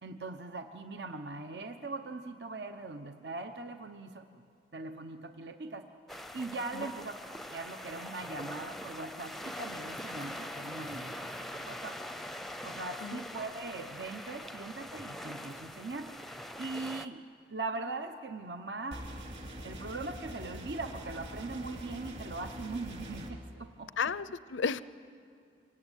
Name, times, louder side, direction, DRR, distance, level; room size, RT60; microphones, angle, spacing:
voice 1, 0.0-4.4 4.7-5.9 6.3-7.2 7.5-12.0 12.6-16.1 16.6-17.2 17.5-19.1 19.6-23.9, right 3 dB, 65° right, 7 dB, 1.0 m, -40 dB
sound 1, 6.1-17.1, left 1 dB, ahead, 0.6 m, -43 dB
sound 2, 18.9-23.3, equal, 35° right, 2.7 m, -43 dB
voice 2, 24.0-24.8, left 5 dB, 85° left, 17 dB, 0.6 m, -33 dB
24.5 x 24.5 x 9.1 m, 2.4 s
head